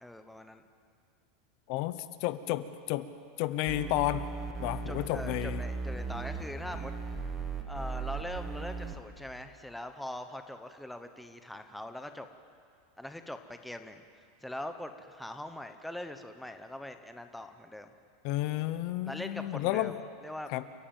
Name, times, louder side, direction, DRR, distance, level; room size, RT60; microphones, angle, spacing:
voice 1, 0.0-0.6 4.9-6.9 7.6-12.3 13.0-17.9 19.1-19.9 20.2-20.5, left 1 dB, ahead, 7 dB, 0.9 m, -42 dB
voice 2, 1.7-3.1 3.4-4.3 4.6-5.6 18.2-20.0 20.5-20.6, left 15 dB, 45° left, 13 dB, 0.9 m, -32 dB
sound 1, 3.7-9.0, right 4 dB, 15° right, 1.6 m, -37 dB
30.0 x 14.5 x 8.9 m, 2.2 s
supercardioid pair, 170°, 0 cm